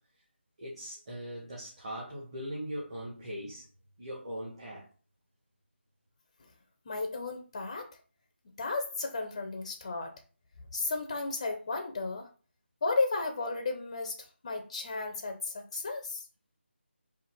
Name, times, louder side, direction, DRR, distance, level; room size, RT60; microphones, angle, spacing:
voice 1, 0.6-3.7 4.0-4.9, equal, 30° right, 1.1 m, -40 dB
voice 2, 6.9-7.9 8.6-10.1 10.7-12.3 12.8-14.2 14.4-16.2, left 3 dB, 25° left, 0.4 m, -33 dB
3.9 x 2.5 x 4.3 m
figure-of-eight pair, 170°, 6 cm